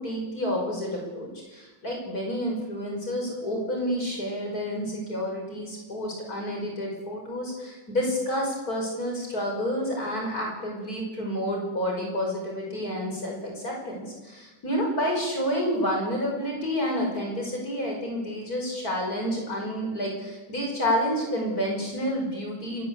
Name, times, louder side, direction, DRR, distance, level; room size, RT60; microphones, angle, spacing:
voice 1, 0.0-22.8, equal, 45° left, 0 dB, 6.1 m, -29 dB
26.5 x 13.5 x 8.5 m, 1.2 s
omnidirectional pair, 2.1 m